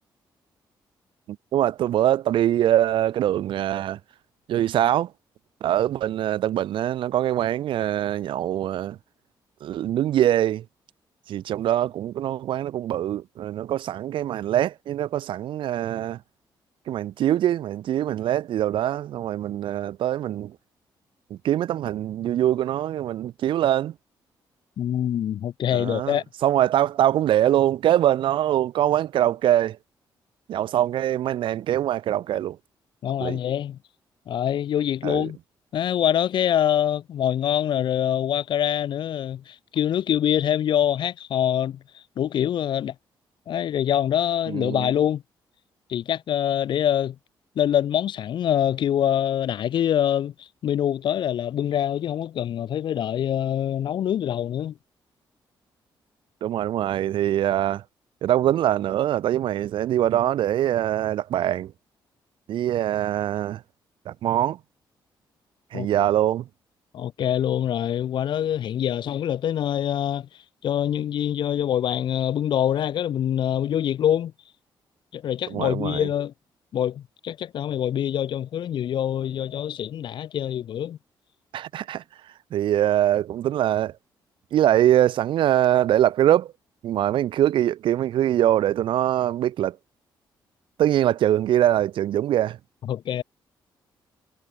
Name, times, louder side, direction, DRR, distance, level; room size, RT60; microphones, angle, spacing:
voice 1, 1.3-4.0 4.5-5.1 5.6-9.0 9.6-10.6 11.3-16.2 16.9-20.6 21.3-23.9 25.7-29.8 30.5-32.6 33.2-33.4 35.0-35.3 44.5-44.9 56.4-57.8 58.2-61.7 62.5-63.6 64.1-64.6 65.7-66.5 75.5-76.1 81.5-82.0 82.5-83.9 84.5-86.5 86.8-89.8 90.8-92.6, right 12 dB, 80° right, 2.1 m, -23 dB
voice 2, 24.8-26.2 33.0-33.8 34.3-35.4 35.7-42.9 43.5-45.2 45.9-47.2 47.6-54.7 65.7-65.9 66.9-70.3 70.6-74.3 75.1-76.3 76.7-81.0 92.8-93.2, left 10 dB, 70° left, 2.4 m, -25 dB
cardioid pair, 125°, 8 cm